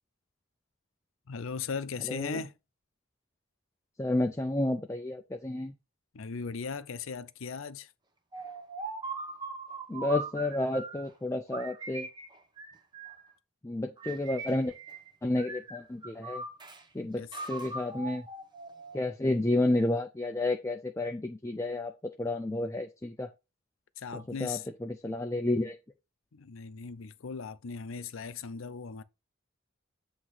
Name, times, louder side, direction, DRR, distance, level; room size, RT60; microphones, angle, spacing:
voice 1, 1.3-2.5 6.1-7.9 17.2-17.3 24.0-24.6 26.3-29.0, left 5 dB, 70° left, 0.6 m, -38 dB
voice 2, 2.1-2.4 4.0-5.7 9.9-12.1 13.6-14.7 15.2-16.4 16.9-18.3 18.9-23.3 24.1-25.8, left 2 dB, 15° left, 0.4 m, -31 dB
sound 1, 8.3-11.1 11.5-13.3 14.0-15.1 15.4-16.8 17.3-19.1, right 3 dB, 20° right, 0.8 m, -41 dB
8.0 x 2.9 x 5.7 m
head